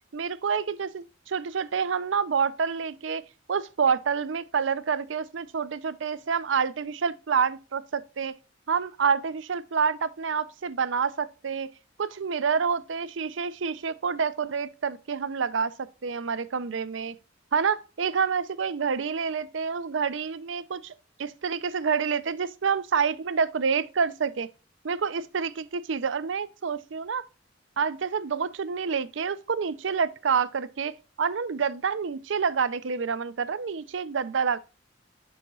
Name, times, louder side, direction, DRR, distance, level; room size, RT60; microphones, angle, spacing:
voice 1, 0.1-3.2 3.5-8.3 8.7-11.7 12.0-15.7 16.0-17.1 17.5-20.9 21.2-24.5 24.8-27.2 27.8-34.6, right 6 dB, 70° right, 0.6 m, -28 dB
11.0 x 4.4 x 2.4 m
head